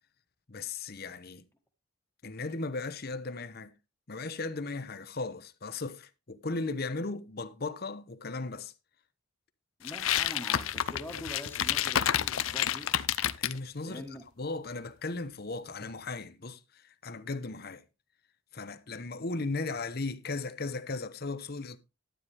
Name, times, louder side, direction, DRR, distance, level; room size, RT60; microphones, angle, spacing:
voice 1, 0.5-1.4 2.2-3.7 4.1-8.7 13.4-14.0 14.4-17.8 18.5-21.8, left 3 dB, 50° left, 0.9 m, -36 dB
sound 1, 9.8-13.6, left 10 dB, 85° left, 0.6 m, -29 dB
voice 2, 9.8-12.9 13.8-14.2, left 1 dB, 10° left, 1.3 m, -44 dB
12.5 x 9.2 x 3.4 m
head